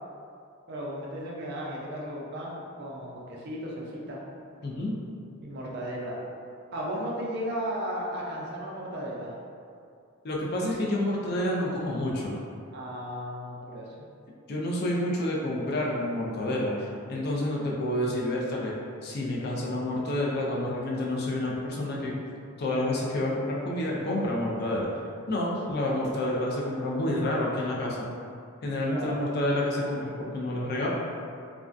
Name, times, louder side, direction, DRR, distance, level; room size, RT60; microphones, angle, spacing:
voice 1, 0.7-4.2 5.4-6.2 6.7-9.3 12.7-14.1 28.9-29.3, equal, 50° right, -4 dB, 0.4 m, -35 dB
voice 2, 4.6-5.0 10.2-12.3 14.5-18.7 19.0-22.1 22.6-24.9 25.3-28.1 28.6-30.9, left 1 dB, 45° left, -4 dB, 0.4 m, -29 dB
2.3 x 2.2 x 2.4 m, 2.4 s
head